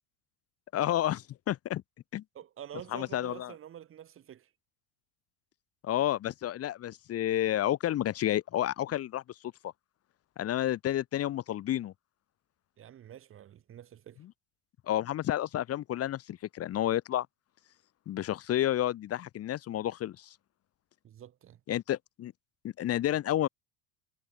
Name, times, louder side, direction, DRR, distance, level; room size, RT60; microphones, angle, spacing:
voice 1, 0.7-1.8 2.1-2.2 2.9-3.5 5.8-9.2 10.4-11.9 14.9-17.3 18.1-20.3 21.7-22.3 22.8-23.5, left 12 dB, 35° left, 2.6 m, -30 dB
voice 2, 2.3-4.5 12.8-14.2 21.0-21.6, right 10 dB, 30° right, 3.4 m, -48 dB
cardioid pair, 150°, 40 cm